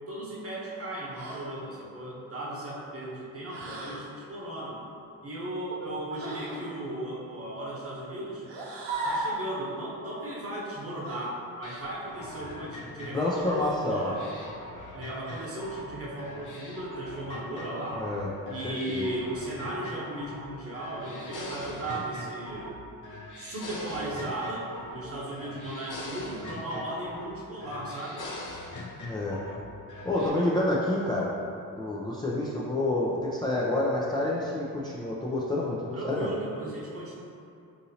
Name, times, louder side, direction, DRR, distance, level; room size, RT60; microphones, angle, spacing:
voice 1, 0.1-4.8 5.2-8.5 9.0-14.2 14.9-18.0 18.5-22.7 23.4-28.2 35.9-37.2, right 1 dB, 30° right, -5 dB, 1.1 m, -36 dB
sound 1, 1.1-1.5 3.5-4.1 6.1-6.7 8.4-9.4 11.0-11.3 13.3-13.8 15.2-15.7, right 2 dB, 65° right, 0.8 m, -36 dB
sound 2, 11.6-15.9 16.2-18.2 18.5-20.5 20.7-22.8 23.0-25.1 25.3-27.3 27.6-29.6 29.9-30.3, left 2 dB, 45° left, 0.7 m, -42 dB
voice 2, 13.1-14.1 17.9-19.1 29.0-29.4 30.0-31.3 31.8-36.3, left 1 dB, 10° left, -6 dB, 0.4 m, -28 dB
3.7 x 2.8 x 2.7 m, 2.6 s
supercardioid pair, 50°, 44 cm